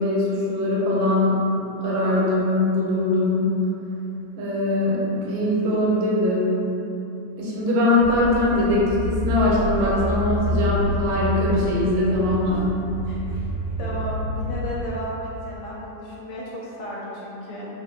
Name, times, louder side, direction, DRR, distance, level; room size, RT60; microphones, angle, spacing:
voice 1, 0.0-1.5 1.8-3.6 4.4-6.6 7.4-12.7, left 1 dB, 85° right, -5 dB, 1.4 m, -21 dB
sound 1, 8.0-14.9, equal, 30° left, 1.2 m, -28 dB
voice 2, 13.8-17.7, equal, 75° left, -6 dB, 1.1 m, -33 dB
2.9 x 2.5 x 2.6 m, 2.9 s
omnidirectional pair, 2.0 m